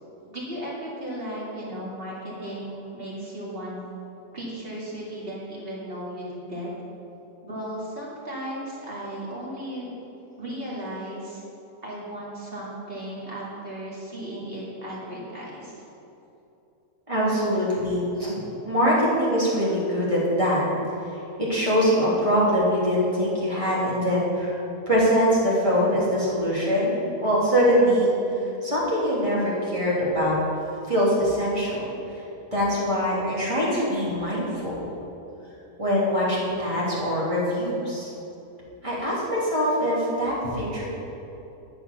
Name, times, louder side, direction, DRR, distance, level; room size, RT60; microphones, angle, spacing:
voice 1, 0.3-3.8 4.3-6.7 7.4-10.0 10.4-11.4 11.8-15.7, right 1 dB, 35° right, -7 dB, 2.7 m, -35 dB
voice 2, 17.1-20.6 21.1-24.6 24.9-26.9 27.2-30.3 30.9-32.2 32.5-34.8 35.8-38.1 38.8-40.8, equal, 20° right, -8 dB, 3.3 m, -23 dB
11.5 x 7.0 x 7.0 m, 3.0 s
omnidirectional pair, 1.7 m